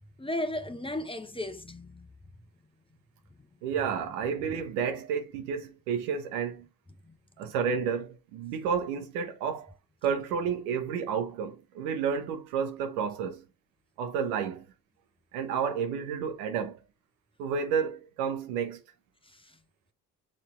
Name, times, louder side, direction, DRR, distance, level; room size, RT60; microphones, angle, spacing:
voice 1, 0.2-2.1 7.1-7.2 7.4-7.5 19.3-19.5, left 1 dB, 10° left, 1.1 m, -35 dB
voice 2, 3.6-6.7 7.4-9.7 10.0-13.4 14.0-14.6 15.3-16.8 17.4-18.8, right 6 dB, 80° right, 1.2 m, -31 dB
6.4 x 4.4 x 3.3 m
hypercardioid pair, 50°, 44 cm